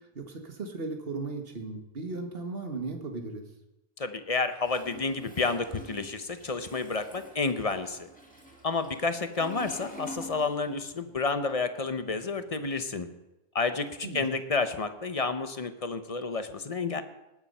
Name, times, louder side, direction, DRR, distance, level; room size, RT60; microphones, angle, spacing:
voice 1, 0.2-3.4 14.0-14.2, right 3 dB, 65° right, 4 dB, 1.8 m, -36 dB
voice 2, 4.0-8.1 8.6-13.1 13.5-17.0, left 4 dB, 35° left, 10 dB, 0.9 m, -30 dB
Toilet flush, 4.6-11.0 11.3-12.9, equal, 10° left, 2.3 m, -47 dB
19.0 x 7.2 x 5.5 m, 0.96 s
omnidirectional pair, 1.1 m